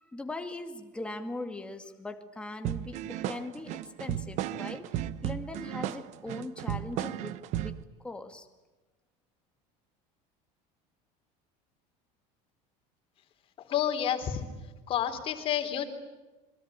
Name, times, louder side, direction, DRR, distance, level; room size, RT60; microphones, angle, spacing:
voice 1, 0.0-8.5, left 2 dB, 5° left, 6 dB, 2.1 m, -40 dB
sound 1, 2.6-7.8, right 12 dB, 50° right, 1.0 m, -34 dB
voice 2, 13.6-14.4 14.9-15.9, left 9 dB, 35° left, 6 dB, 3.6 m, -29 dB
27.0 x 23.5 x 9.1 m, 1.1 s
cardioid pair, 165°, 16 cm